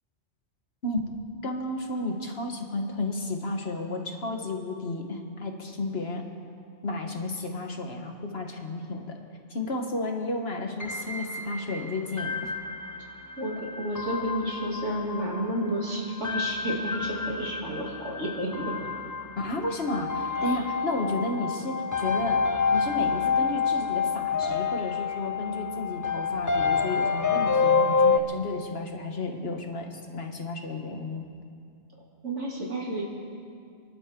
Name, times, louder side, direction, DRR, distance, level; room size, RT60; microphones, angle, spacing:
voice 1, 1.4-6.2 6.8-9.2 9.5-12.5 19.4-22.4 22.7-31.3, left 2 dB, 60° left, 3 dB, 1.7 m, -32 dB
sound 1, 10.8-28.2, left 5 dB, 30° left, 0.3 m, -28 dB
voice 2, 13.4-18.7 20.4-20.6 32.2-33.0, right 1 dB, 85° right, -4 dB, 3.3 m, -31 dB
28.5 x 12.0 x 3.8 m, 2.3 s
omnidirectional pair, 1.2 m